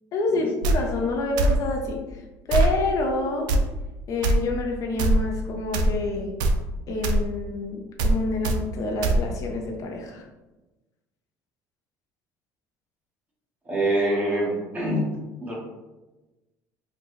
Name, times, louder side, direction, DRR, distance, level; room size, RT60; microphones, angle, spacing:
voice 1, 0.1-2.2 2.5-3.5 4.1-6.4 6.9-10.2, left 2 dB, 50° left, 1 dB, 0.6 m, -27 dB
sound 1, 0.6-0.8 1.4-1.6 2.5-2.7 3.5-3.6 4.2-4.3 5.0-5.2 5.7-5.9 6.4-6.6 7.0-7.2 8.0-8.2 8.4-8.6 9.0-9.2, right 2 dB, 70° right, 0.4 m, -20 dB
voice 2, 13.6-15.1 15.4-15.5, right 1 dB, 20° right, -3 dB, 1.2 m, -25 dB
3.8 x 2.2 x 3.1 m, 1.1 s
supercardioid pair, 100°, 7 cm